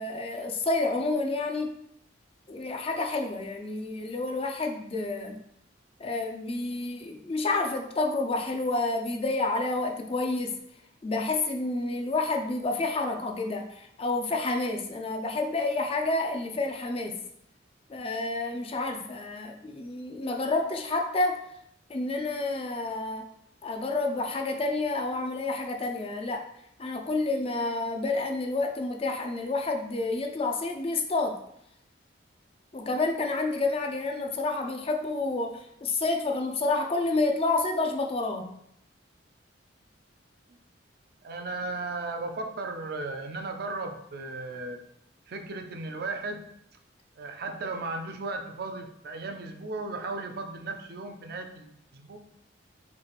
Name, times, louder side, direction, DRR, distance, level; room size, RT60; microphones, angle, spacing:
voice 1, 0.0-1.8 2.5-5.4 6.0-10.6 11.0-17.2 17.9-21.4 21.9-23.3 23.6-26.4 26.8-31.4 32.7-38.5, left 2 dB, 30° left, 3 dB, 0.4 m, -29 dB
voice 2, 41.2-44.8 45.3-46.4 47.2-52.2, right 3 dB, 55° right, 5 dB, 0.4 m, -36 dB
4.7 x 3.2 x 2.4 m, 0.74 s
head